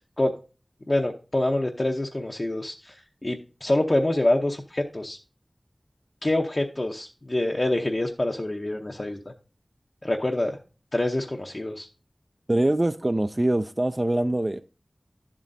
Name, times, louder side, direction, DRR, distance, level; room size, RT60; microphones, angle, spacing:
voice 1, 0.9-5.2 6.2-9.2 10.0-10.6 10.9-11.9, left 1 dB, 40° left, 0.7 m, -26 dB
voice 2, 12.5-14.6, right 1 dB, 30° right, 0.4 m, -23 dB
11.5 x 7.4 x 2.7 m
wide cardioid pair, 60°, 0 cm